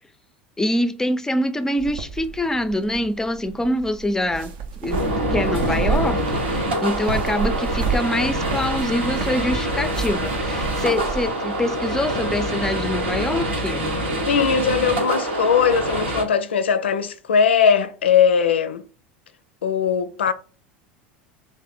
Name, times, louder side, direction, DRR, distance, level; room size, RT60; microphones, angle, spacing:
voice 1, 0.6-4.5 4.8-5.0 5.3-14.0, left 1 dB, 10° left, 0.4 m, -25 dB
sound 1, 1.8-11.3, right 6 dB, 65° right, 0.6 m, -30 dB
sound 2, 4.9-16.2, right 1 dB, 85° right, 1.0 m, -25 dB
voice 2, 14.2-18.8 19.6-20.3, left 7 dB, 85° left, 0.4 m, -19 dB
3.4 x 2.5 x 4.1 m
hypercardioid pair, 80°, 6 cm